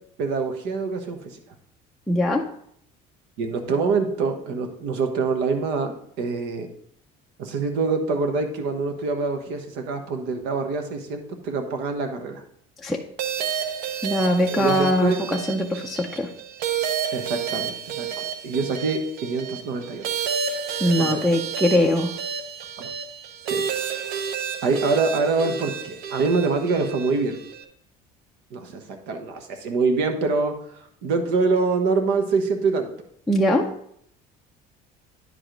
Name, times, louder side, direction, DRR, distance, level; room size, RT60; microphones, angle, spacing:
voice 1, 0.2-1.2 3.4-6.7 7.4-12.4 14.4-15.2 17.1-20.1 21.0-21.3 22.8-22.9 23.5-23.7 24.6-27.4 28.5-30.5 31.0-32.9, right 4 dB, 80° right, 5 dB, 1.2 m, -25 dB
voice 2, 2.1-2.4 12.8-13.0 14.0-16.3 20.8-22.1 33.3-33.7, left 1 dB, ahead, -1 dB, 0.4 m, -21 dB
sound 1, 13.2-27.6, right 7 dB, 60° right, 0.8 m, -30 dB
9.6 x 5.0 x 3.8 m, 0.67 s
cardioid pair, 170°, 17 cm